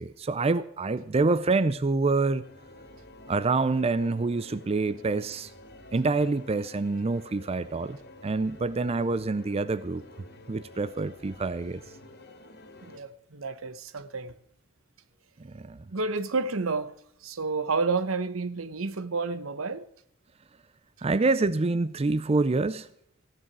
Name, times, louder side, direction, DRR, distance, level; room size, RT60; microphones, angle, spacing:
voice 1, 0.0-2.4 3.3-5.5 5.9-8.0 8.2-10.0 10.5-11.8 15.4-15.8 21.0-22.9, right 3 dB, 30° right, 0.5 m, -26 dB
sound 1, 2.4-13.0, left 1 dB, 50° left, 2.2 m, -49 dB
voice 2, 12.8-14.3 15.9-16.9 17.2-19.8, right 4 dB, 80° right, 1.0 m, -30 dB
15.0 x 10.5 x 6.1 m
head